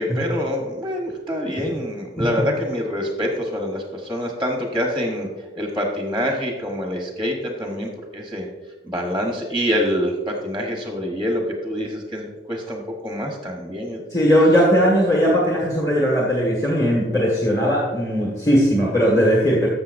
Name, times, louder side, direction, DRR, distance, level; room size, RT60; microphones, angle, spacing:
voice 1, 0.0-5.3 5.6-8.5 8.8-14.0, equal, 5° right, 1 dB, 1.0 m, -26 dB
voice 2, 14.1-19.7, equal, 20° left, -3 dB, 1.5 m, -18 dB
14.0 x 6.5 x 2.6 m, 1.2 s
head